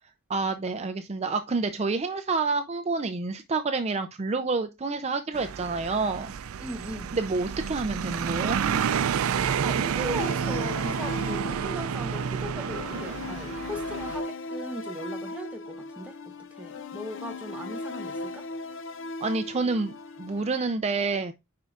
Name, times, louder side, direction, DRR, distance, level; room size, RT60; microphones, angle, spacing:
voice 1, 0.3-6.3 7.1-8.6 19.2-21.3, right 3 dB, 30° right, 0.5 m, -28 dB
sound 1, 5.3-14.2, right 7 dB, 90° right, 0.4 m, -30 dB
voice 2, 6.6-7.2 9.6-18.5, equal, 5° right, 0.9 m, -38 dB
sound 2, 10.2-20.6, left 2 dB, 65° left, 0.5 m, -37 dB
9.5 x 4.6 x 2.4 m
head